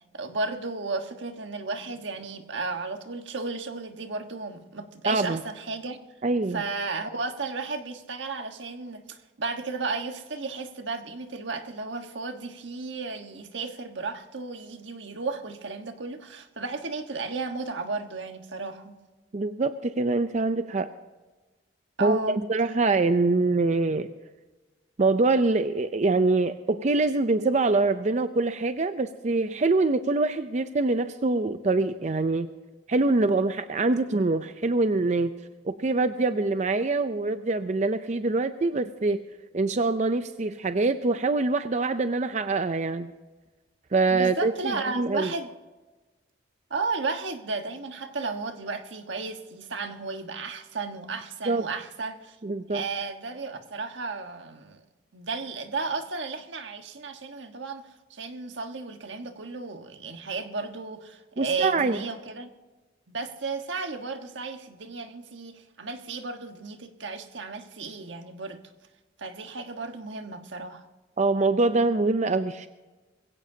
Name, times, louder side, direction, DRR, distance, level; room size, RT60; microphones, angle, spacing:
voice 1, 0.1-6.0 6.5-19.0 22.0-22.4 44.1-45.5 46.7-52.4 52.7-54.8 55.1-62.5 63.1-68.6 69.2-70.9, right 4 dB, 80° right, 6 dB, 1.4 m, -34 dB
voice 2, 5.1-5.4 6.2-6.6 19.3-20.9 22.0-24.1 25.0-32.5 32.9-35.3 35.6-39.2 39.5-43.1 43.9-44.5 45.0-45.3 51.5-51.6 52.4-52.8 61.4-62.0 71.2-72.7, right 3 dB, 40° right, 10 dB, 0.5 m, -24 dB
21.5 x 16.5 x 2.8 m, 1.2 s
head